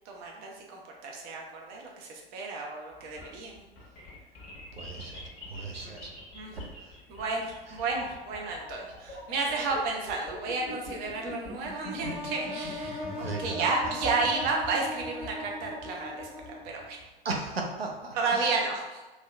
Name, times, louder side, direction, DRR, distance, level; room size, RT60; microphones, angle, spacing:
voice 1, 0.1-3.7 5.8-5.9 6.3-6.6 7.1-17.0 18.1-19.0, right 3 dB, 35° right, 0 dB, 0.5 m, -32 dB
sound 1, 2.9-17.0, left 1 dB, 40° left, 0.8 m, -44 dB
voice 2, 4.7-5.2 5.5-6.1 6.5-6.7 13.2-13.6 17.2-18.5, right 3 dB, 90° right, 1 dB, 0.4 m, -36 dB
sound 2, 12.0-16.9, left 1 dB, 5° right, 0.8 m, -39 dB
2.7 x 2.0 x 2.2 m, 1.2 s
figure-of-eight pair, 85°, 29 cm